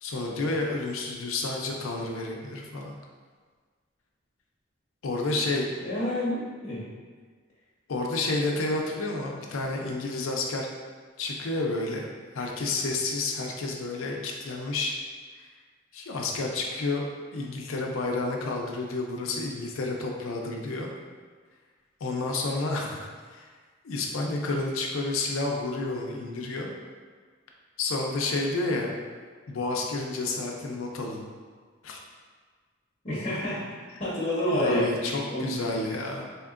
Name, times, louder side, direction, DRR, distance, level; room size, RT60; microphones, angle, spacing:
voice 1, 0.0-2.9 5.0-5.7 7.9-10.7 11.2-12.0 12.3-14.9 15.9-17.0 17.3-20.9 22.0-23.5 23.8-26.7 27.8-28.9 29.5-31.3 31.8-32.0 34.5-36.2, left 2 dB, 85° left, 0 dB, 0.5 m, -30 dB
voice 2, 5.8-6.8 33.0-33.6 34.0-34.9 35.3-35.5, left 1 dB, 40° left, -9 dB, 0.7 m, -28 dB
3.5 x 2.8 x 2.4 m, 1.5 s
head